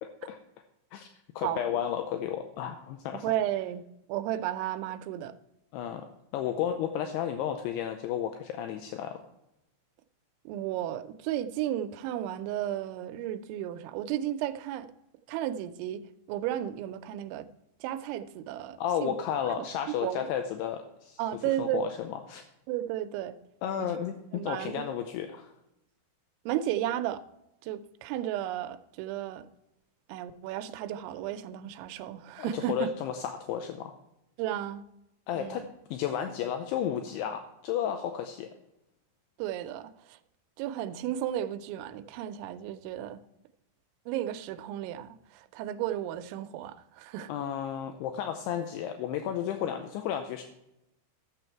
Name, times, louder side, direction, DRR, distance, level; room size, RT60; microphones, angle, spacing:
voice 1, 0.0-0.4 0.9-1.1 1.4-3.3 5.7-6.1 6.3-9.2 18.8-22.4 23.6-25.5 32.5-33.9 35.3-38.5 47.3-50.4, left 9 dB, 80° left, 2.4 m, -33 dB
voice 2, 3.1-3.8 4.1-5.3 10.5-14.9 15.3-17.5 17.8-19.1 19.6-20.3 21.2-21.8 22.7-23.4 23.8-24.0 24.3-24.9 26.5-27.2 27.6-29.5 30.1-32.9 34.4-34.8 35.4-35.6 39.4-40.2 40.6-43.2 44.1-47.3, right 12 dB, 85° right, 3.0 m, -33 dB
12.5 x 7.0 x 4.5 m
omnidirectional pair, 5.3 m